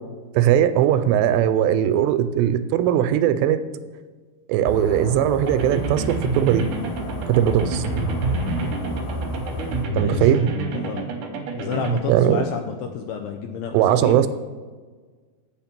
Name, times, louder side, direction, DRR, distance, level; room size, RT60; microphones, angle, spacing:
voice 1, 0.3-3.6 4.5-6.6 7.3-7.8 9.9-10.4 12.1-12.4 13.7-14.3, right 10 dB, 85° right, 11 dB, 2.7 m, -19 dB
sound 1, 4.6-9.8, equal, 65° left, 2.5 m, -31 dB
sound 2, 5.4-12.0, right 3 dB, 70° right, 2.0 m, -28 dB
voice 2, 10.0-10.3 10.7-11.1 11.5-14.3, left 7 dB, 80° left, 3 dB, 2.4 m, -31 dB
8.8 x 5.8 x 5.9 m, 1.4 s
omnidirectional pair, 4.9 m